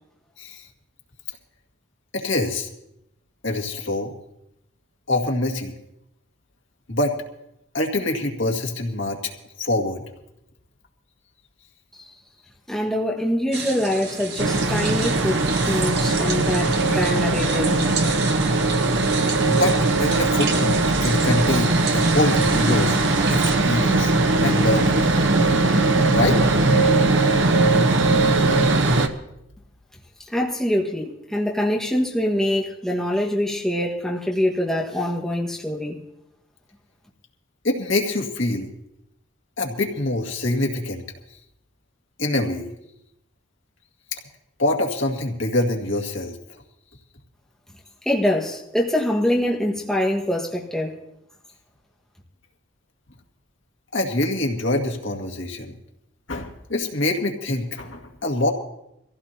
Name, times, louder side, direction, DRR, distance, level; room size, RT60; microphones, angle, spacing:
voice 1, 2.1-2.7 3.4-4.1 5.1-5.7 6.9-7.2 7.7-9.2 9.6-10.0 19.4-24.1 24.4-25.0 26.1-26.4 37.6-38.7 39.6-41.0 42.2-42.7 44.1-44.2 44.6-46.4 53.9-55.7 56.3-58.5, left 2 dB, 90° left, 2 dB, 2.1 m, -25 dB
voice 2, 12.7-17.7 30.3-36.0 48.0-50.9, left 1 dB, ahead, -3 dB, 1.6 m, -24 dB
sound 1, 13.5-23.6, right 5 dB, 55° right, 1.5 m, -32 dB
sound 2, 14.4-29.1, right 2 dB, 80° right, 1.1 m, -20 dB
24.0 x 15.5 x 2.9 m, 0.83 s
head